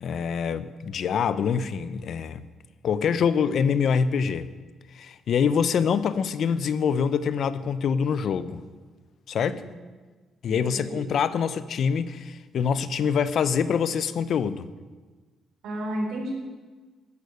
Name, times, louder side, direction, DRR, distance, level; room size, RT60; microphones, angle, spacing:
voice 1, 0.0-2.4 2.8-4.5 4.9-8.6 9.3-9.6 10.4-14.7, left 6 dB, 65° left, 14 dB, 0.8 m, -25 dB
voice 2, 9.3-9.7 10.5-11.0 15.6-16.3, right 1 dB, 75° right, 0 dB, 4.7 m, -33 dB
15.5 x 11.5 x 6.6 m, 1.4 s
cardioid pair, 90°, 0 cm